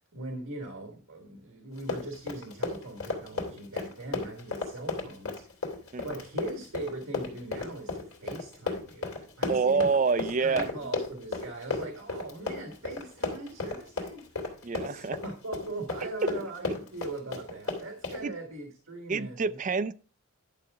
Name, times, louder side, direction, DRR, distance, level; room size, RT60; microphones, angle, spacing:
voice 1, 0.1-9.1 9.4-10.0 10.2-14.5 14.8-19.6, right 2 dB, 70° right, 1.6 m, -40 dB
Run, 1.7-18.2, left 3 dB, 75° left, 3.0 m, -34 dB
voice 2, 9.5-10.7 14.6-15.2 16.0-16.1 18.2-18.3 19.1-19.9, right 4 dB, 35° right, 0.4 m, -27 dB
11.5 x 6.9 x 3.5 m
head